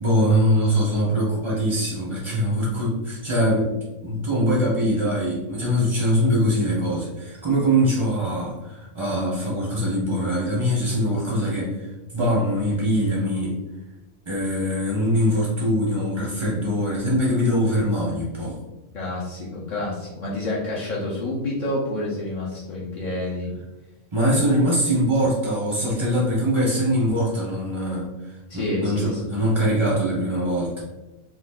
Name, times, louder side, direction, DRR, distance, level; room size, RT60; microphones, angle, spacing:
voice 1, 0.0-3.7 4.0-13.6 14.3-18.6 24.1-28.1 28.5-30.8, equal, 35° right, -6 dB, 0.4 m, -22 dB
voice 2, 18.9-23.5 28.5-29.4, left 1 dB, 65° left, -5 dB, 0.4 m, -28 dB
2.6 x 2.3 x 3.4 m, 1.0 s
omnidirectional pair, 1.4 m